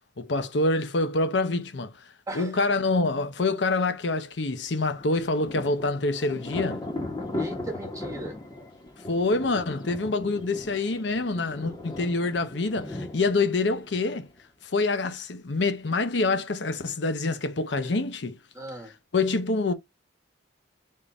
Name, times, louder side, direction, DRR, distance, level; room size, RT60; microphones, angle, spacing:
voice 1, 0.2-2.1 2.3-6.8 9.1-14.3 14.6-18.4 18.8-19.7, left 3 dB, 75° left, 0.7 m, -26 dB
voice 2, 2.3-2.6 7.4-8.4 11.6-11.8 18.5-18.9, right 2 dB, 15° right, 1.4 m, -38 dB
Thunder, 4.9-14.4, left 2 dB, 25° left, 1.1 m, -37 dB
3.7 x 2.6 x 4.7 m
head